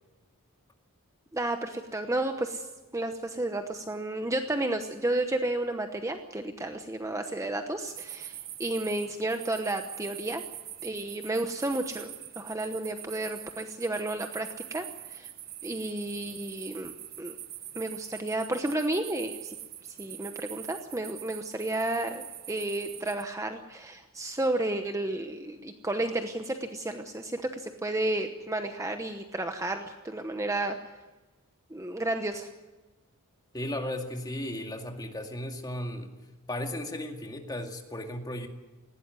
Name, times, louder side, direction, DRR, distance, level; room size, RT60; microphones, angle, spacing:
voice 1, 1.3-2.7 2.9-10.4 10.8-12.1 12.4-15.3 15.6-16.9 17.2-17.4 17.7-19.6 20.0-30.8 31.7-32.5, right 2 dB, 15° right, 6 dB, 1.0 m, -32 dB
sound 1, 7.9-23.2, right 12 dB, 45° right, 1.2 m, -43 dB
voice 2, 33.5-36.2 36.5-38.5, left 1 dB, 20° left, 4 dB, 2.1 m, -35 dB
19.5 x 16.5 x 9.6 m, 1.2 s
head